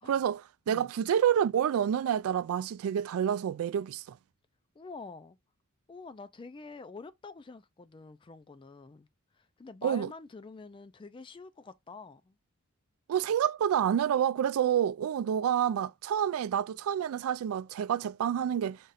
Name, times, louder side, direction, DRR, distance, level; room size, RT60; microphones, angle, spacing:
voice 1, 0.0-4.2 9.8-10.1 13.1-18.8, right 9 dB, 75° right, 0.3 m, -28 dB
voice 2, 4.8-5.4 5.9-9.1 9.3-12.4, left 4 dB, 25° left, 0.3 m, -47 dB
5.3 x 2.4 x 3.9 m
head